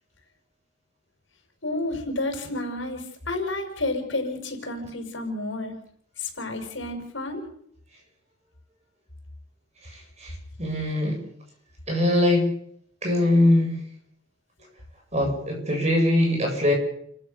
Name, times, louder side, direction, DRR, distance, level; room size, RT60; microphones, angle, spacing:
voice 1, 1.6-5.7 6.2-7.4, left 2 dB, 75° left, 4 dB, 5.9 m, -30 dB
voice 2, 9.8-11.2 11.9-12.5 13.0-13.8 15.1-16.7, left 1 dB, 35° right, 2 dB, 7.9 m, -22 dB
29.5 x 14.5 x 7.0 m, 0.66 s
head